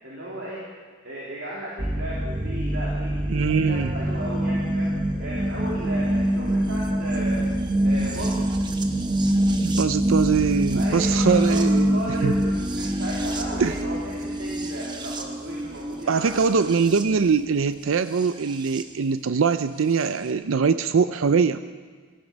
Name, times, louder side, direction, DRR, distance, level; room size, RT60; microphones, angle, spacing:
voice 1, 0.0-0.6 1.0-4.9 5.2-7.4 7.8-8.4 10.7-16.5, equal, 65° right, -7 dB, 3.3 m, -35 dB
sound 1, 1.8-18.8 20.0-20.1, right 1 dB, 20° right, 0.9 m, -25 dB
voice 2, 3.3-3.9 9.6-12.3 13.6-13.7 16.1-21.6, right 5 dB, 80° right, 11 dB, 0.5 m, -22 dB
16.5 x 15.5 x 5.2 m, 1.5 s
head